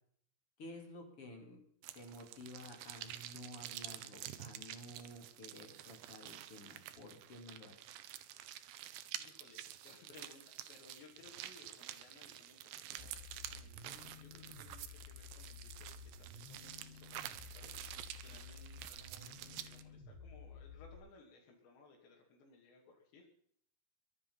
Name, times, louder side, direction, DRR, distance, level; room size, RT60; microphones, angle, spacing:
voice 1, 0.6-1.6 1.9-7.7, left 1 dB, 35° left, 2 dB, 4.0 m, -52 dB
sound 1, 1.8-19.8, right 12 dB, 80° right, 3.1 m, -49 dB
voice 2, 9.2-23.3, left 3 dB, 75° left, -2 dB, 4.8 m, -62 dB
sound 2, 13.0-21.0, left 5 dB, 25° right, 2.6 m, -53 dB
23.0 x 9.8 x 5.7 m, 0.63 s
omnidirectional pair, 5.0 m